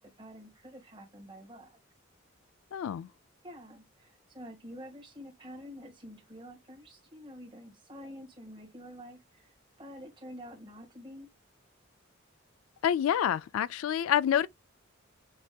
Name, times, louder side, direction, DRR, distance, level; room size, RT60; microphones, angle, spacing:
voice 1, 0.2-1.8 3.4-11.3, equal, 25° right, 1.7 m, -48 dB
voice 2, 2.7-3.1 12.8-14.5, left 9 dB, 80° left, 0.3 m, -27 dB
6.4 x 2.8 x 2.2 m
head